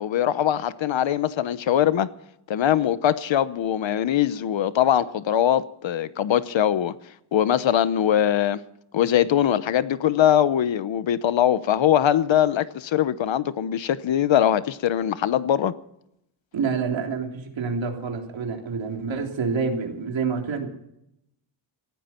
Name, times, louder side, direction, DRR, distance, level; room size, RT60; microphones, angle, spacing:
voice 1, 0.0-2.1 2.5-6.9 7.3-8.6 8.9-15.7, left 10 dB, 70° left, 0.9 m, -22 dB
voice 2, 16.5-20.7, right 5 dB, 70° right, 3.5 m, -27 dB
19.0 x 16.0 x 4.4 m
wide cardioid pair, 170°, 47 cm